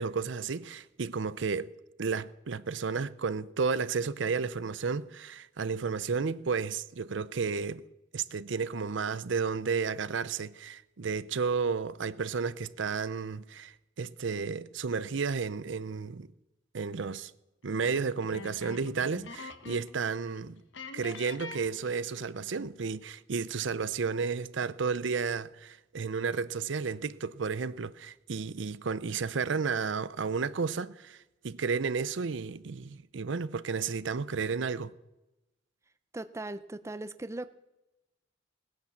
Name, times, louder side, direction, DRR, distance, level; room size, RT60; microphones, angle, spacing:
voice 1, 0.0-1.7 2.0-7.8 8.1-16.3 16.7-17.3 17.6-20.6 20.9-31.2 31.4-34.9, right 5 dB, 70° right, 0.6 m, -32 dB
sound 1, 17.8-20.0 20.3-20.4 20.7-22.4, left 3 dB, 75° left, 1.4 m, -45 dB
voice 2, 36.1-37.5, right 2 dB, 15° right, 0.5 m, -39 dB
18.0 x 10.5 x 7.1 m
head